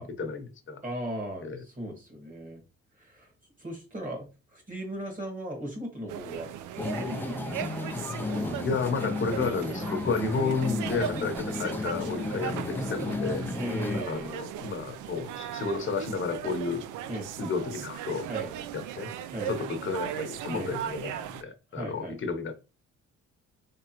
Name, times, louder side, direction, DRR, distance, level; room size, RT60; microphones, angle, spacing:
voice 1, 0.0-0.8 1.4-1.6 8.6-13.5 14.1-16.8 17.4-18.3 18.7-19.1 19.5-22.5, left 4 dB, 40° left, 6 dB, 0.9 m, -31 dB
voice 2, 0.8-2.6 3.0-3.3 3.6-6.5 6.9-7.9 8.2-8.7 13.6-14.4 17.1-17.3 18.3-18.5 19.3-19.5 20.5-20.7 21.7-22.2, equal, 25° right, 2 dB, 1.8 m, -37 dB
sound 1, 6.1-21.4, right 10 dB, 85° right, 0.5 m, -38 dB
sound 2, 6.8-14.0, left 2 dB, 5° left, 0.4 m, -33 dB
3.6 x 3.2 x 2.9 m, 0.31 s
cardioid pair, 90°, 30 cm